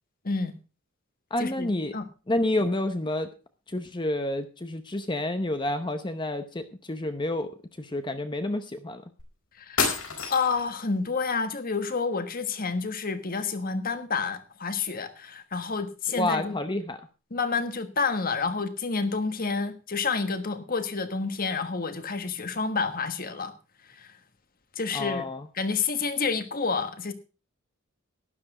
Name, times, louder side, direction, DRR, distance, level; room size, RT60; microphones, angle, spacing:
voice 1, 0.2-0.6 1.4-2.0 9.6-10.0 10.3-16.6 17.3-23.5 24.0-24.1 24.8-25.2 25.5-27.1, left 4 dB, 40° left, 1.4 m, -29 dB
voice 2, 1.3-2.0 2.3-3.3 3.7-7.5 7.8-9.0 16.1-17.0 24.9-25.5, left 1 dB, 20° left, 0.8 m, -29 dB
sound 1, 9.2-9.3 9.8-10.7, left 5 dB, 65° left, 4.7 m, -28 dB
12.0 x 10.5 x 4.9 m
head